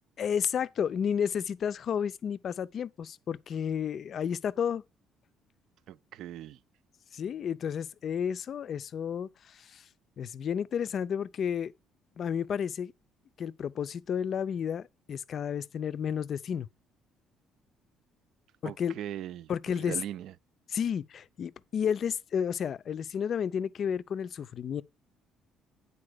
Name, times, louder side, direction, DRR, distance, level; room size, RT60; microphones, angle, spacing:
voice 1, 0.2-4.8 7.1-9.8 10.2-11.7 12.2-12.9 13.4-16.7 18.6-18.9 19.5-20.0 20.7-24.8, left 8 dB, 45° left, 0.5 m, -32 dB
voice 2, 5.9-6.6 18.6-19.5 19.8-20.3, right 11 dB, 65° right, 0.4 m, -39 dB
9.9 x 4.1 x 6.5 m
cardioid pair, 140°, 0 cm